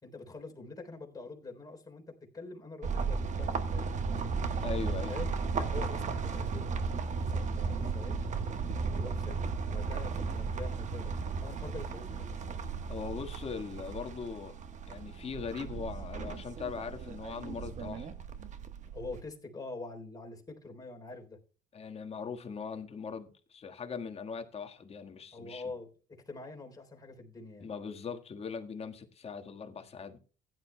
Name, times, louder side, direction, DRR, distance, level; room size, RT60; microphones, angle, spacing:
voice 1, 0.0-3.8 5.1-5.3 5.6-6.7 7.2-8.2 8.9-9.4 9.7-12.6 18.9-21.4 25.3-27.7, left 3 dB, 20° left, 3.5 m, -45 dB
sound 1, 2.8-19.2, right 5 dB, 45° right, 1.3 m, -35 dB
voice 2, 4.6-5.1 12.9-14.6 14.9-18.1 21.7-25.6 27.6-30.2, left 5 dB, 35° left, 1.6 m, -40 dB
15.5 x 11.0 x 2.2 m
cardioid pair, 110°, 17 cm